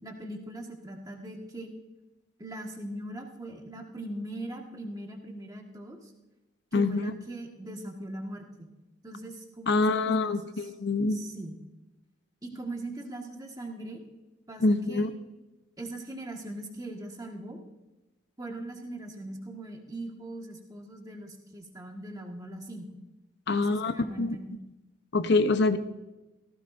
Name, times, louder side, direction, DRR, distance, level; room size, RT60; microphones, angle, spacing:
voice 1, 0.0-1.7 2.4-6.1 6.7-8.7 9.0-10.7 11.1-11.6 12.4-14.0 14.5-15.1 15.8-17.6 18.4-22.9 23.5-24.6, right 1 dB, 20° right, 1 dB, 1.7 m, -40 dB
voice 2, 6.7-7.1 9.7-11.2 14.6-15.1 23.5-23.9 24.2-24.4 25.1-25.8, left 3 dB, 55° left, 10 dB, 0.8 m, -25 dB
18.0 x 15.5 x 2.6 m, 1.1 s
head